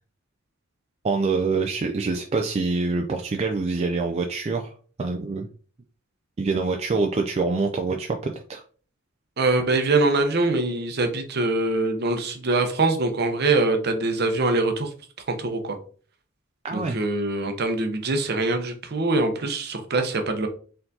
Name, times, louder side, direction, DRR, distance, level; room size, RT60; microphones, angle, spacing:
voice 1, 1.0-5.5 6.4-8.6 16.6-17.0, right 3 dB, 30° right, 3 dB, 0.4 m, -25 dB
voice 2, 9.4-14.9 15.3-15.8 16.7-20.5, right 2 dB, 50° right, 6 dB, 0.8 m, -23 dB
4.4 x 3.8 x 2.7 m, 0.41 s
head